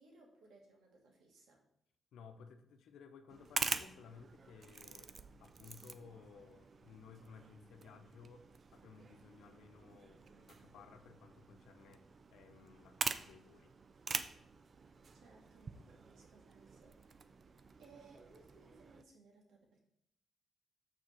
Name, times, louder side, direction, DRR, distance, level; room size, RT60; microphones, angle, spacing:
voice 1, 0.0-1.6 15.1-17.0 17.8-19.8, right 3 dB, 85° right, 0 dB, 2.0 m, -63 dB
voice 2, 2.1-5.1 5.4-12.0 12.3-13.7, left 5 dB, 85° left, 8 dB, 0.8 m, -58 dB
sound 1, 3.3-19.0, right 5 dB, 50° right, 0.5 m, -46 dB
6.4 x 4.2 x 6.2 m, 0.76 s
cardioid pair, 75°, 0 cm